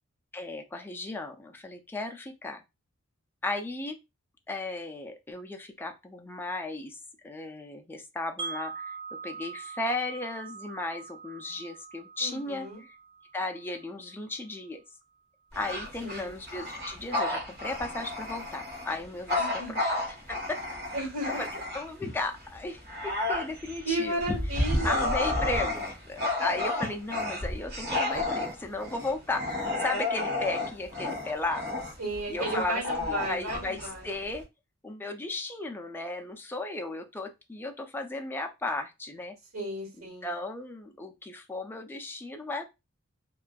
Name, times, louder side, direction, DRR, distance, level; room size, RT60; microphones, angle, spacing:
voice 1, 0.3-2.6 3.4-4.0 4.5-7.0 7.2-9.0 9.2-13.0 13.3-14.8 15.5-20.0 20.3-20.6 21.3-21.5 21.7-24.4 24.8-31.6 32.3-32.8 33.1-34.5 34.8-39.4 40.0-42.7, left 2 dB, 10° left, 0.3 m, -35 dB
Wind chime, 8.4-14.4, right 5 dB, 25° right, 0.6 m, -43 dB
voice 2, 12.2-12.8 16.0-16.4 19.4-19.7 20.9-21.5 23.8-25.2 32.0-34.1 39.5-40.3, right 1 dB, 85° right, 1.6 m, -34 dB
Bark / Growling, 15.5-22.1 22.5-34.4, left 2 dB, 50° right, 1.1 m, -31 dB
2.5 x 2.3 x 2.2 m
head